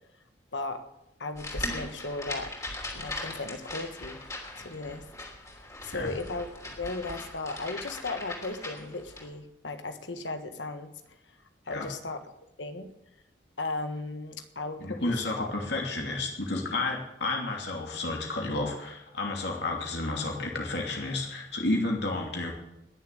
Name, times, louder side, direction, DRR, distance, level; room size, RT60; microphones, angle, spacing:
voice 1, 0.5-0.8 1.2-2.5 2.9-4.2 4.6-5.0 5.6-10.9 11.7-12.2 12.6-12.9 13.6-15.5, left 3 dB, 90° left, 8 dB, 1.6 m, -36 dB
sound 1, 1.4-9.3, left 2 dB, 20° left, 3.2 m, -39 dB
voice 2, 14.8-22.5, left 2 dB, 70° left, 0 dB, 2.9 m, -31 dB
20.5 x 7.3 x 8.2 m, 0.91 s
head